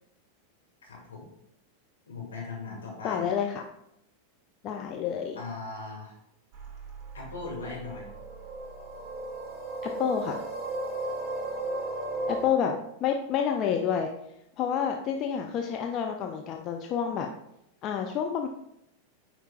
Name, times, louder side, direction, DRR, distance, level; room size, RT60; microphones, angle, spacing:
voice 1, 0.8-1.3 2.1-3.2 5.4-6.2 7.1-8.1, left 3 dB, 65° left, -2 dB, 2.2 m, -39 dB
voice 2, 3.0-3.7 4.6-5.4 9.8-10.4 12.3-12.7 13.0-14.1 14.6-17.3 17.8-18.5, left 8 dB, 35° left, 3 dB, 0.5 m, -29 dB
sound 1, 6.5-12.5, right 2 dB, 25° right, 1.5 m, -35 dB
8.9 x 4.5 x 2.4 m, 0.80 s
figure-of-eight pair, 90°, 0 cm